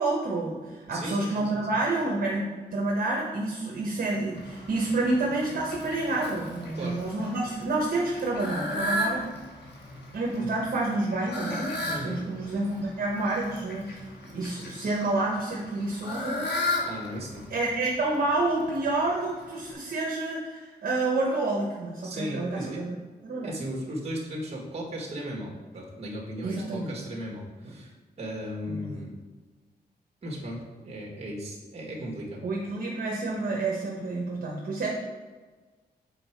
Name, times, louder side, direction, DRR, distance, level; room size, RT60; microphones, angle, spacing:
voice 1, 0.0-9.3 10.1-16.5 17.5-23.0 23.2-23.5 26.4-26.9 27.6-27.7 28.7-29.0 32.0-32.1 32.4-34.9, right 2 dB, 55° right, -2 dB, 1.1 m, -29 dB
voice 2, 0.9-1.6 6.7-7.0 11.9-12.2 16.8-17.4 22.0-22.8 23.4-27.9 28.2-29.2 30.2-32.4, equal, 35° right, -2 dB, 1.8 m, -36 dB
Fowl, 4.3-19.7, left 1 dB, 90° left, 1.4 m, -36 dB
7.6 x 4.4 x 4.6 m, 1.4 s
wide cardioid pair, 160°, 17 cm